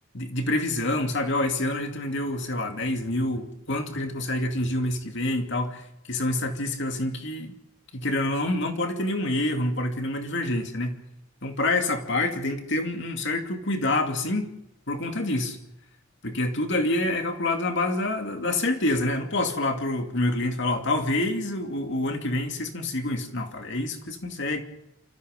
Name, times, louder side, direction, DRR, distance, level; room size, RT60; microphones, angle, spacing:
voice 1, 0.1-7.5 7.9-11.0 11.4-14.5 14.9-15.6 16.2-24.6, left 2 dB, 55° left, 4 dB, 2.5 m, -27 dB
28.5 x 14.5 x 6.6 m, 0.82 s
head